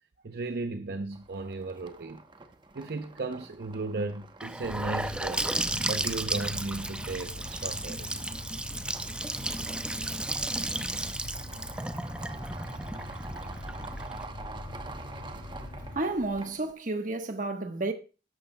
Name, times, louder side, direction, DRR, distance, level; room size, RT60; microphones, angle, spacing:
voice 1, 0.2-2.2 2.7-8.1, right 3 dB, 65° right, 0.7 m, -35 dB
sound 1, 1.1-16.7, right 3 dB, 25° right, 0.9 m, -47 dB
Gurgling / Sink (filling or washing) / Bathtub (filling or washing), 4.4-14.2, right 1 dB, 5° right, 0.4 m, -34 dB
sound 2, 4.6-16.0, left 1 dB, 70° left, 5.5 m, -42 dB
voice 2, 15.9-17.9, right 2 dB, 50° right, 1.2 m, -31 dB
13.0 x 11.5 x 2.2 m
head